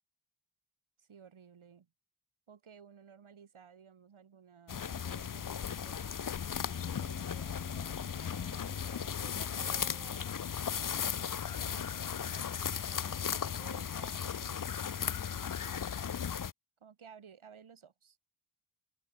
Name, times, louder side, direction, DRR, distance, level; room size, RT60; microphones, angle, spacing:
voice 1, 1.0-1.9 2.5-6.3 6.7-10.4 10.9-15.2 15.5-16.1 16.8-18.2, right 7 dB, 75° right, 3.3 m, -56 dB
sound 1, 4.7-16.5, left 8 dB, 40° left, 0.7 m, -36 dB
sound 2, 6.3-10.0, left 2 dB, 25° left, 7.7 m, -54 dB
open air
wide cardioid pair, 140°, 49 cm